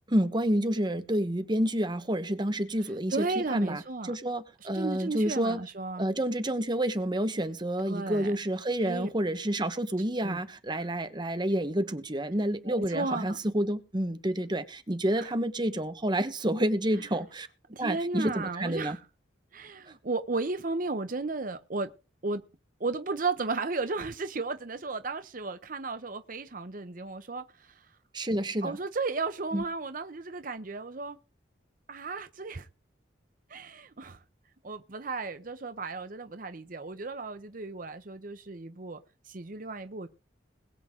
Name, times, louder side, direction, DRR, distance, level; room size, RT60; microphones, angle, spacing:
voice 1, 0.1-5.6 6.0-17.5 17.8-19.0 28.1-28.8 29.5-29.6, right 1 dB, 25° right, 1.2 m, -29 dB
voice 2, 3.1-4.1 4.7-6.1 7.9-8.3 8.8-9.1 10.2-10.4 10.7-10.8 12.7-13.4 15.2-15.3 17.7-19.0 19.5-21.9 22.2-22.4 22.8-27.8 28.6-31.2 31.9-32.7 33.5-34.2 34.6-39.0 39.2-40.1, right 3 dB, 45° right, 0.8 m, -34 dB
21.5 x 7.8 x 3.7 m
head